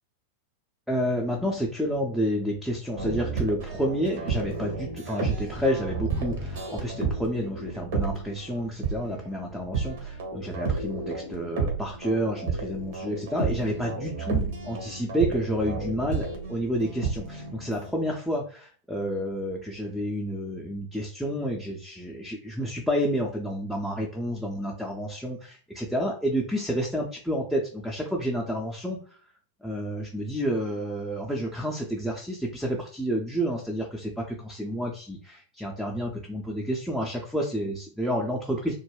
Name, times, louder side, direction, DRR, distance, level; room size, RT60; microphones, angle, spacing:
voice 1, 0.9-29.2 29.6-38.7, equal, ahead, -2 dB, 0.4 m, -30 dB
sound 1, 3.0-17.9, right 4 dB, 55° right, 0.7 m, -32 dB
2.3 x 2.1 x 3.2 m, 0.40 s
figure-of-eight pair, 90°, 0 cm